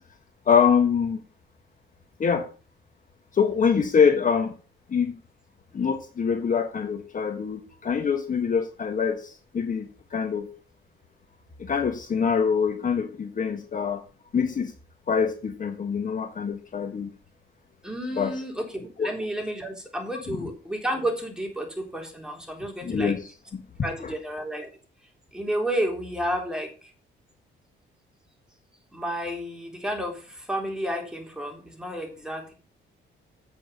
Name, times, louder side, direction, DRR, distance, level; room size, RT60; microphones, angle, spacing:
voice 1, 0.5-1.2 2.2-2.5 3.3-4.5 4.9-5.2 5.7-10.5 11.6-14.0 14.3-14.7 15.1-17.1 18.2-18.3 19.0-19.1 20.3-20.5 22.8-23.2 23.5-23.6, left 6 dB, 40° left, 6 dB, 1.4 m, -24 dB
voice 2, 17.8-23.1 23.8-24.7 25.3-26.9 28.9-32.5, right 1 dB, 5° right, 2 dB, 3.6 m, -31 dB
8.4 x 7.1 x 5.4 m, 0.36 s
cardioid pair, 90°, 20 cm